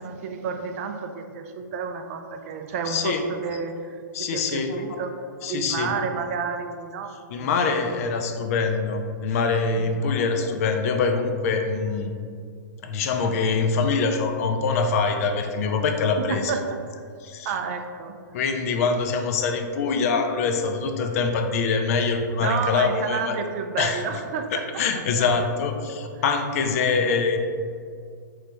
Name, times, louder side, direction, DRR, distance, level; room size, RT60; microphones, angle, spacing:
voice 1, 0.0-5.2 5.5-7.6 9.8-10.2 16.2-16.9 17.4-18.2 22.4-24.7 25.9-26.2, right 5 dB, 45° right, 6 dB, 0.3 m, -31 dB
voice 2, 2.9-3.2 4.1-5.0 5.4-6.0 7.3-12.1 12.8-16.6 17.2-17.6 18.3-23.3 23.8-24.0 24.5-27.4, left 4 dB, 50° left, 5 dB, 0.4 m, -24 dB
3.8 x 3.2 x 3.4 m, 2.2 s
hypercardioid pair, 150°, 10 cm